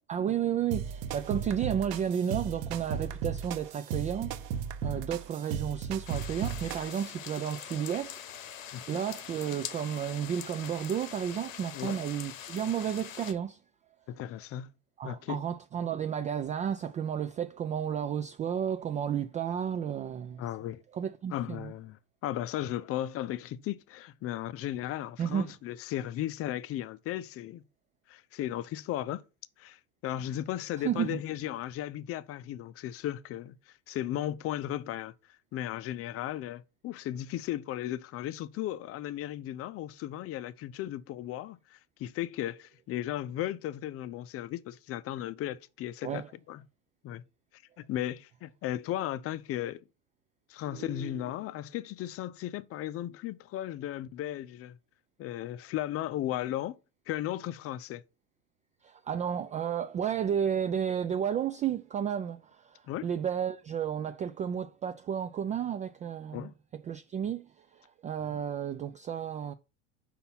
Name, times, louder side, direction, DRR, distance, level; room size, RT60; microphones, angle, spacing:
voice 1, 0.1-13.6 15.0-20.4 20.9-21.7 25.2-25.5 30.8-31.2 46.0-46.3 50.7-51.2 58.8-66.5 66.8-69.5, right 8 dB, 20° right, 0.3 m, -32 dB
sound 1, 0.7-7.1, right 7 dB, 60° right, 1.1 m, -36 dB
sound 2, 6.1-13.3, left 10 dB, 85° left, 1.0 m, -43 dB
voice 2, 14.1-14.7 15.0-15.4 20.4-20.8 21.3-22.0 22.2-27.6 28.1-29.2 29.6-35.1 35.5-46.6 47.0-47.2 47.8-49.8 50.5-54.8 55.2-56.8 57.1-58.0 62.9-63.1 66.3-66.5 68.3-68.4, left 13 dB, 35° left, 0.6 m, -36 dB
5.7 x 4.1 x 5.7 m
hypercardioid pair, 90°, 39 cm